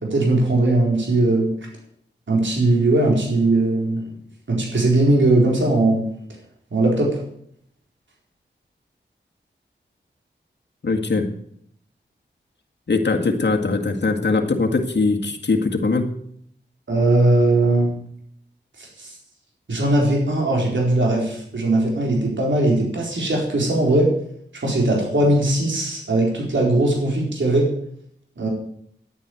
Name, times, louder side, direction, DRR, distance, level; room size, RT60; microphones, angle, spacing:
voice 1, 0.0-1.5 2.3-4.1 4.5-6.0 6.7-7.2 16.9-17.9 19.0-19.1 19.7-24.1 24.6-27.7 28.4-28.5, right 2 dB, 75° right, -2 dB, 4.4 m, -19 dB
voice 2, 10.8-11.3 12.9-16.1, left 3 dB, 65° left, 2 dB, 1.9 m, -21 dB
10.5 x 9.4 x 8.0 m, 0.69 s
cardioid pair, 50°, 19 cm